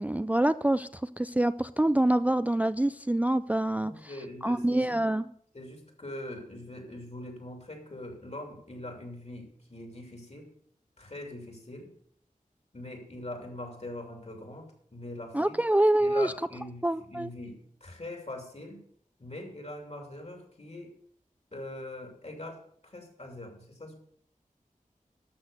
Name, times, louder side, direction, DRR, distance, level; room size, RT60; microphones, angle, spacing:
voice 1, 0.0-4.1 4.4-5.3 15.3-16.3 16.8-17.3, right 1 dB, 10° right, 13 dB, 0.3 m, -26 dB
voice 2, 3.8-5.0 5.5-10.5 11.0-11.9 12.7-15.6 16.0-16.8 17.1-18.8 19.2-21.0 21.5-24.0, left 1 dB, 50° left, 3 dB, 2.9 m, -42 dB
13.0 x 6.3 x 6.6 m, 0.65 s
wide cardioid pair, 65°, 14 cm